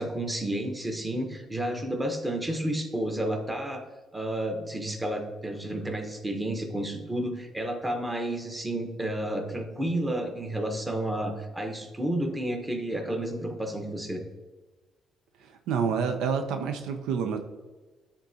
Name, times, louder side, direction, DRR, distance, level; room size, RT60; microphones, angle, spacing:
voice 1, 0.0-3.8 4.1-14.2, right 1 dB, 15° right, 4 dB, 1.1 m, -31 dB
voice 2, 15.4-17.4, right 6 dB, 90° right, 6 dB, 0.5 m, -28 dB
10.0 x 3.7 x 2.8 m, 1.2 s
cardioid pair, 85°, 0 cm